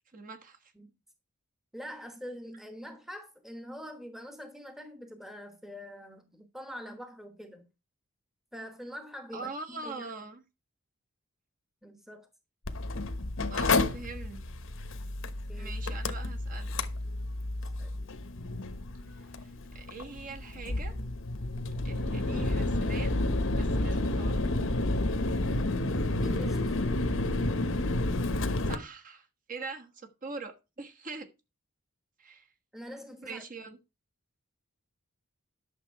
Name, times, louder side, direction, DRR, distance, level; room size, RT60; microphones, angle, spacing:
voice 1, 0.1-0.7 9.3-10.4 13.5-14.4 15.6-16.7 19.1-20.9 21.8-23.2 23.5-24.5 28.6-31.3 32.2-32.5 33.2-33.8, right 3 dB, 35° right, 1.3 m, -42 dB
voice 2, 1.7-7.7 8.5-10.1 11.8-12.3 15.2-15.7 17.6-18.0 26.2-26.8 32.7-33.4, equal, ahead, 1.1 m, -44 dB
Mechanical fan, 12.7-28.8, left 2 dB, 60° left, 1.0 m, -30 dB
11.0 x 6.8 x 4.7 m
head